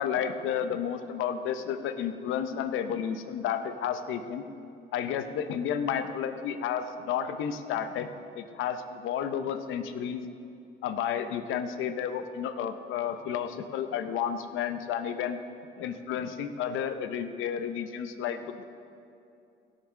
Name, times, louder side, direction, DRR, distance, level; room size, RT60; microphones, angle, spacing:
voice 1, 0.0-4.5 4.9-8.1 8.3-10.3 10.8-15.4 15.8-18.6, left 8 dB, 85° left, 9 dB, 0.6 m, -31 dB
16.5 x 6.6 x 3.6 m, 2.6 s
cardioid pair, 90°, 20 cm